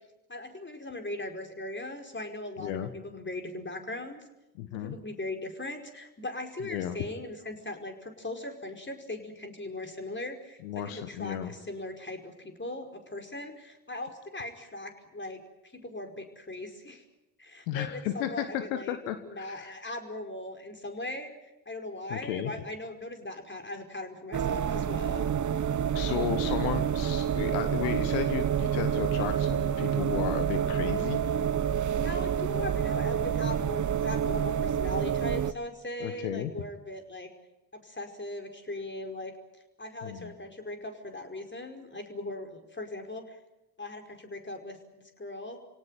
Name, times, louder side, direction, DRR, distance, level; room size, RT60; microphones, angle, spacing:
voice 1, 0.3-4.2 4.7-15.4 15.7-17.1 17.4-19.0 19.2-25.3 25.9-26.3 32.0-37.3 37.7-39.3 39.8-43.4 43.8-45.6, left 1 dB, 20° left, 4 dB, 5.1 m, -39 dB
voice 2, 2.6-2.9 4.6-5.0 6.6-6.9 10.6-11.5 17.7-19.7 22.1-22.5 25.9-31.2 36.0-36.5 40.0-40.3, left 11 dB, 75° left, 9 dB, 1.5 m, -34 dB
sound 1, 24.3-35.5, right 8 dB, 35° right, 1.1 m, -28 dB
29.0 x 18.0 x 9.4 m, 0.96 s
hypercardioid pair, 45°, 50 cm